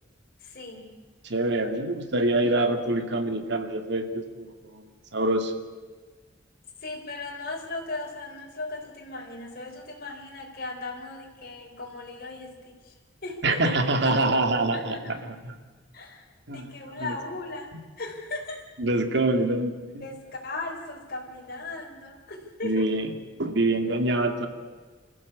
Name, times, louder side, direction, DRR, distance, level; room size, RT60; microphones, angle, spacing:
voice 1, 0.4-0.9 6.8-12.9 13.2-13.8 14.7-15.3 15.9-17.7 18.0-18.6 20.0-22.9, left 2 dB, 55° left, 0 dB, 4.2 m, -37 dB
voice 2, 1.2-5.5 13.4-15.5 16.5-16.7 17.0-17.1 18.8-20.0 22.6-23.1 23.4-24.5, right 2 dB, 65° right, 6 dB, 2.2 m, -25 dB
25.5 x 15.0 x 8.5 m, 1.4 s
head